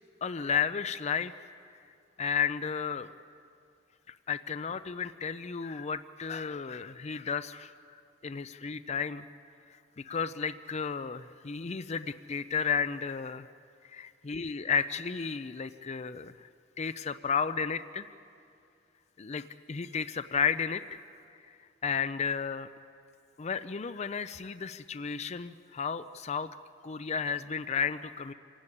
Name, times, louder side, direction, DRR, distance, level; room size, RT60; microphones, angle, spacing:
voice 1, 0.2-1.3 2.2-3.1 4.1-7.7 8.2-9.3 9.7-13.5 13.8-16.5 16.8-18.1 19.2-21.0 21.8-22.7 23.4-26.5 26.8-28.3, left 6 dB, 35° left, 12 dB, 0.5 m, -33 dB
26.5 x 16.5 x 9.9 m, 2.5 s
head